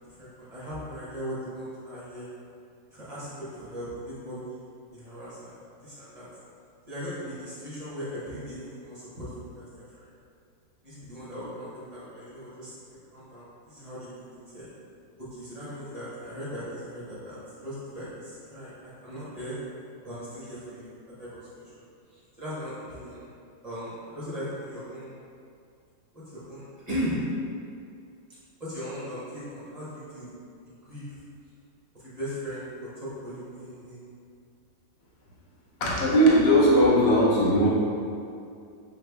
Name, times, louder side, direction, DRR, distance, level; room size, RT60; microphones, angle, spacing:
voice 1, 0.2-2.3 2.9-4.6 4.9-5.5 5.8-6.3 6.9-10.1 10.8-12.7 13.1-14.7 15.2-19.6 20.0-20.9 21.2-21.7 22.1-23.3 23.6-25.1 26.1-27.2 28.6-30.3 30.9-31.2 31.9-34.0, equal, 35° right, -10 dB, 0.6 m, -38 dB
voice 2, 35.8-37.7, equal, 55° left, -5 dB, 0.6 m, -19 dB
5.4 x 3.3 x 2.2 m, 2.4 s
omnidirectional pair, 2.1 m